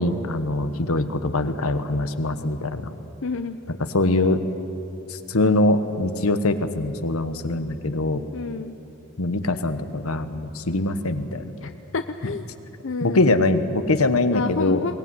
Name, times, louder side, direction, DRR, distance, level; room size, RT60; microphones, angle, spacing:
voice 1, 0.0-2.9 3.9-4.4 5.1-8.2 9.2-11.5 13.0-14.8, left 2 dB, 85° left, 10 dB, 1.3 m, -23 dB
voice 2, 3.2-3.6 8.3-8.7 11.6-12.5 12.8-13.2 14.3-14.9, left 3 dB, 60° left, 8 dB, 0.7 m, -29 dB
22.5 x 18.0 x 9.7 m, 2.9 s
head